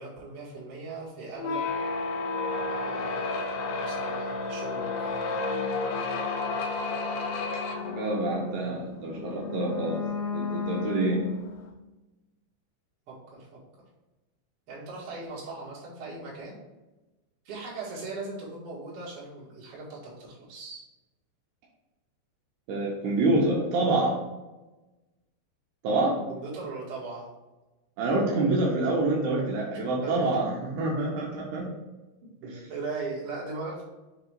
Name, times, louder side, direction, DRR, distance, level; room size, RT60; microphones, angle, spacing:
voice 1, 0.0-1.7 2.7-5.4 13.1-13.5 14.7-16.6 17.4-20.9 26.3-27.3 30.0-30.2 31.5-31.8 32.4-33.8, right 3 dB, 45° right, -7 dB, 2.0 m, -39 dB
sound 1, 1.3-11.7, left 3 dB, 80° left, 2.5 m, -32 dB
voice 2, 7.8-10.0 10.3-11.2 22.7-24.1 25.8-26.2 28.0-31.7 32.4-32.6, right 2 dB, 75° right, -4 dB, 2.7 m, -27 dB
7.0 x 3.0 x 4.6 m, 1.1 s
omnidirectional pair, 5.2 m